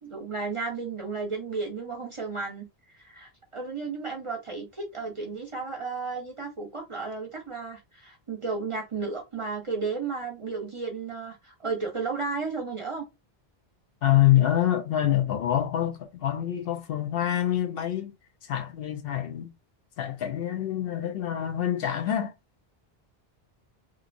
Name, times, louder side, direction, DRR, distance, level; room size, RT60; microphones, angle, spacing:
voice 1, 0.0-13.0, right 4 dB, 40° right, 0.5 m, -33 dB
voice 2, 14.0-18.1 18.4-19.5 20.0-22.3, left 12 dB, 70° left, 0.8 m, -26 dB
3.1 x 2.4 x 2.5 m
omnidirectional pair, 1.1 m